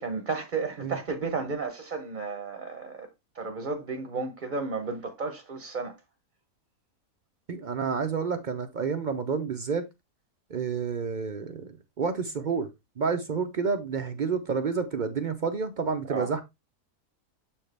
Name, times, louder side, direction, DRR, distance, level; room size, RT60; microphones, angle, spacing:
voice 1, 0.0-3.1 3.3-6.0 16.1-16.3, right 4 dB, 40° right, 0.8 m, -33 dB
voice 2, 7.5-9.8 10.5-11.7 12.0-12.7 13.0-16.4, right 5 dB, 65° right, 0.4 m, -29 dB
7.1 x 4.4 x 3.2 m
omnidirectional pair, 1.6 m